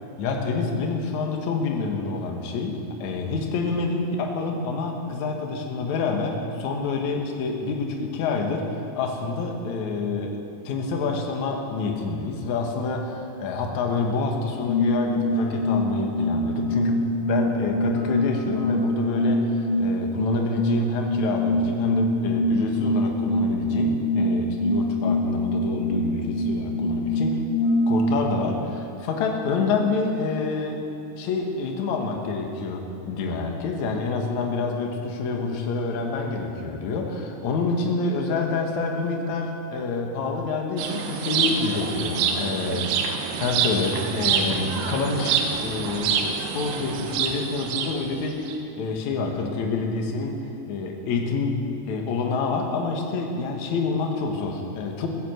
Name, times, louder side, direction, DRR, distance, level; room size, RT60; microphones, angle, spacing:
voice 1, 0.2-10.4 10.6-27.4 27.9-30.8 31.2-43.1 43.4-51.5 51.9-55.1, left 4 dB, 60° left, 2 dB, 2.1 m, -27 dB
sound 1, 14.7-29.1, left 1 dB, 90° left, 3.6 m, -24 dB
sound 2, 40.8-48.5, right 6 dB, 80° right, 2.9 m, -26 dB
15.5 x 10.0 x 7.8 m, 2.7 s
omnidirectional pair, 4.9 m